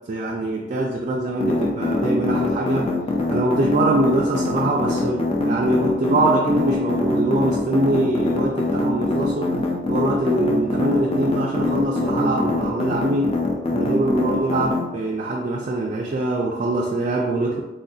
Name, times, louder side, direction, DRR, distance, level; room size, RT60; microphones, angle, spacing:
voice 1, 0.1-2.9 3.3-9.6 9.9-13.4 13.7-17.6, right 2 dB, 40° right, -1 dB, 0.3 m, -23 dB
sound 1, 1.4-14.8, left 2 dB, 30° left, 0.4 m, -23 dB
3.5 x 2.3 x 2.6 m, 1.1 s
head